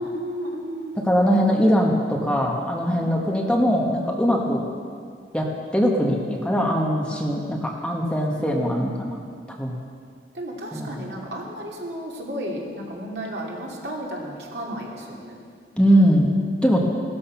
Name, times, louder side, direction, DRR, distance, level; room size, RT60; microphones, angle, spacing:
voice 1, 0.0-1.1 2.9-3.0 7.0-7.3 8.4-8.6 10.3-15.4, equal, 65° right, -2 dB, 2.8 m, -33 dB
voice 2, 0.9-4.6 5.3-9.2 9.6-9.8 10.7-11.1 15.7-16.8, equal, 5° left, -1 dB, 1.5 m, -21 dB
16.5 x 13.0 x 5.8 m, 2.1 s
head